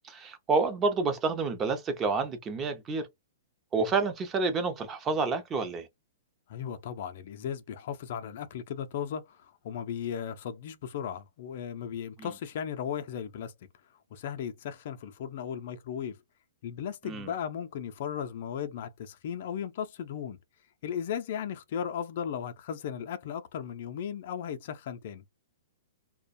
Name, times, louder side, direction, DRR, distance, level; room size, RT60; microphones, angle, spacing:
voice 1, 0.0-3.1 3.7-5.9 17.1-17.3, right 4 dB, 20° right, 0.6 m, -29 dB
voice 2, 6.5-13.5 14.1-16.2 16.6-20.4 20.8-25.2, left 8 dB, 60° left, 0.5 m, -36 dB
2.3 x 2.1 x 2.6 m
hypercardioid pair, 135°, 0 cm